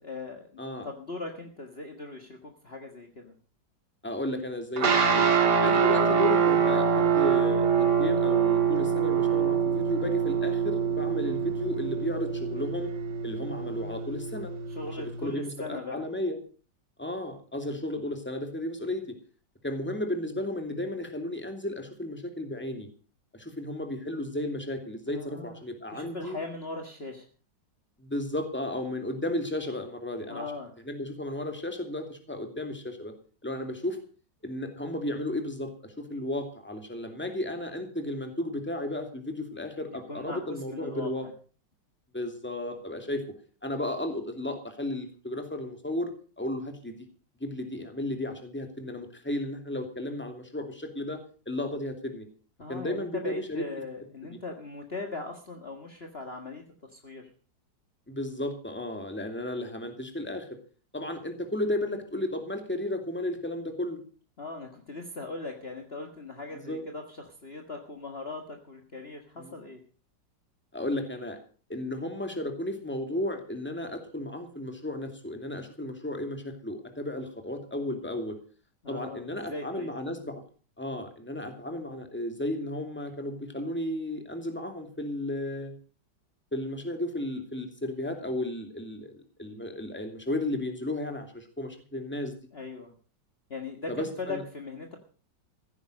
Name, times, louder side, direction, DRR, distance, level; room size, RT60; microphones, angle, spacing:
voice 1, 0.0-3.3 13.5-14.0 14.7-16.0 25.1-25.6 25.9-27.3 30.3-30.7 39.9-41.1 52.6-56.6 56.9-57.2 64.4-69.8 78.8-79.9 92.5-92.9 93.5-95.0, left 3 dB, 35° left, 4 dB, 2.0 m, -39 dB
voice 2, 4.0-5.3 5.6-12.9 13.2-14.5 15.0-16.4 17.0-19.0 19.6-22.9 23.3-26.4 28.0-30.5 30.8-33.1 33.4-34.0 34.4-41.3 42.1-43.2 43.6-46.1 46.4-46.9 47.4-51.2 51.5-52.3 52.7-53.6 58.1-60.5 60.9-64.0 66.5-66.8 69.4-69.5 70.7-71.4 71.7-78.4 78.9-80.4 80.8-85.7 86.5-89.1 89.4-92.3 93.9-94.4, left 1 dB, 5° left, 5 dB, 2.4 m, -34 dB
sound 1, 4.8-15.3, right 7 dB, 65° right, 2.7 m, -25 dB
15.5 x 9.9 x 6.5 m, 0.39 s
omnidirectional pair, 2.0 m